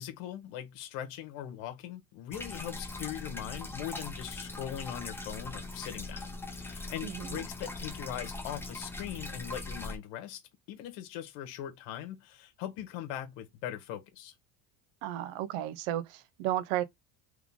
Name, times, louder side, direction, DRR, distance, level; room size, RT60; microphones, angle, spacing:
voice 1, 0.0-10.4 10.7-14.3, left 11 dB, 90° left, 1.3 m, -40 dB
sound 1, 2.3-10.0, left 2 dB, 5° left, 0.5 m, -41 dB
voice 2, 7.0-7.4 15.0-16.8, right 13 dB, 75° right, 0.8 m, -33 dB
3.7 x 3.3 x 3.5 m
cardioid pair, 145°, 50 cm